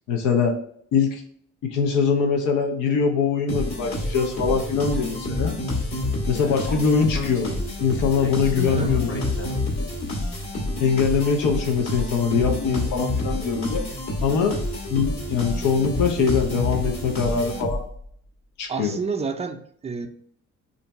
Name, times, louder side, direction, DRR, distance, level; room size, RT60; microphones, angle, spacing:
voice 1, 0.1-0.5 0.9-1.2 1.6-5.5 6.3-7.5 7.8-9.1 9.4-9.5 10.8-13.8 14.2-14.5 14.9-17.8 18.6-18.9, left 5 dB, 90° left, 2 dB, 0.6 m, -22 dB
sound 1, 3.5-18.1, left 2 dB, 65° left, 1.3 m, -28 dB
Speech, 6.4-9.8, left 3 dB, 45° left, 0.8 m, -37 dB
voice 2, 18.7-20.1, right 5 dB, 20° right, 6 dB, 0.4 m, -29 dB
2.6 x 2.2 x 3.9 m, 0.63 s
cardioid pair, 90°, 30 cm